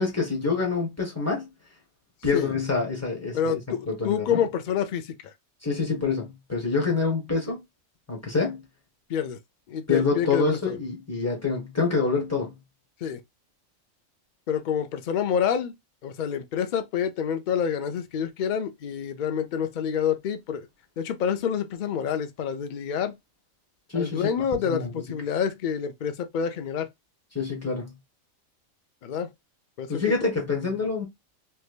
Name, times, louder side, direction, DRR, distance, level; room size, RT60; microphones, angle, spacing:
voice 1, 0.0-1.5 2.2-4.4 5.6-7.6 8.1-8.6 9.9-12.6 23.9-24.3 24.6-25.0 27.3-28.0 29.9-31.0, left 4 dB, 10° left, 1.3 m, -26 dB
voice 2, 3.3-5.1 9.1-9.4 9.7-10.7 13.0-13.2 14.5-15.7 16.0-20.7 21.0-23.2 23.9-26.9 29.0-29.3 29.8-29.9, left 8 dB, 55° left, 0.5 m, -27 dB
3.3 x 2.8 x 2.3 m
omnidirectional pair, 1.4 m